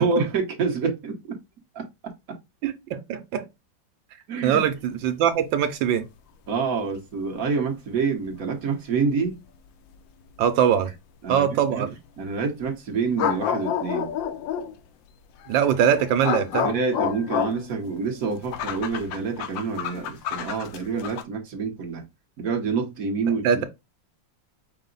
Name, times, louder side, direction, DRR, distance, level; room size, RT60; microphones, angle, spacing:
voice 1, 0.0-1.4 1.7-2.4 4.3-4.6 6.5-9.4 11.2-11.8 12.2-14.1 16.6-22.0 22.4-23.4, right 4 dB, 50° right, 1.3 m, -27 dB
voice 2, 2.6-3.4 4.4-6.0 10.4-10.9 11.3-11.9 15.5-16.7 23.4-23.6, right 8 dB, 80° right, 1.4 m, -22 dB
sound 1, 8.3-8.4 9.3-9.4 13.2-14.8 15.4-21.2, left 8 dB, 80° left, 1.3 m, -29 dB
5.8 x 2.1 x 3.8 m
omnidirectional pair, 2.1 m